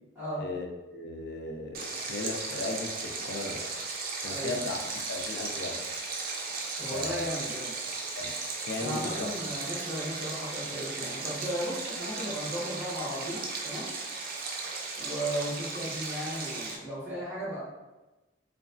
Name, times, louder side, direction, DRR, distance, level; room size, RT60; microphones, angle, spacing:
voice 1, 0.4-3.6 4.2-5.8 6.9-7.3 8.2-8.3 8.6-9.3, left 3 dB, 65° left, 3 dB, 0.4 m, -36 dB
Stream, 1.7-16.8, right 4 dB, 55° right, 0.4 m, -36 dB
voice 2, 6.8-7.7 8.8-13.9 15.0-17.6, equal, 15° right, -10 dB, 1.3 m, -35 dB
3.0 x 2.2 x 2.5 m, 1.1 s
head